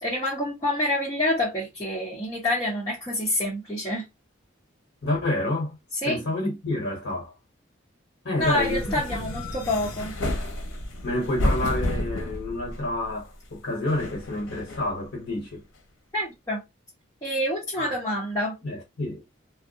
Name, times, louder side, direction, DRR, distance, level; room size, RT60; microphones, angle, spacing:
voice 1, 0.0-4.1 6.0-6.2 8.4-10.1 16.1-16.6 17.2-18.6, left 1 dB, 20° left, 0.9 m, -27 dB
voice 2, 5.0-5.8 6.0-7.3 8.2-9.2 11.0-15.6 17.8-17.9 18.6-19.2, left 1 dB, 60° left, 1.0 m, -29 dB
sound 1, 8.4-13.3 13.9-15.0, left 1 dB, 85° left, 0.7 m, -31 dB
2.3 x 2.0 x 2.7 m
head